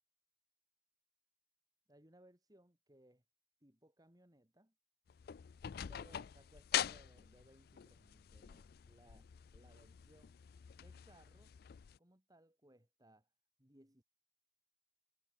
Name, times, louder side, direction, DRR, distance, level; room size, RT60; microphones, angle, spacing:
voice 1, 1.9-3.2 3.6-4.7 5.9-10.4 10.7-11.5 12.0-13.3 13.6-14.0, right 1 dB, 20° right, 3.0 m, -66 dB
sound 1, 5.1-12.0, left 11 dB, 55° left, 0.3 m, -44 dB
head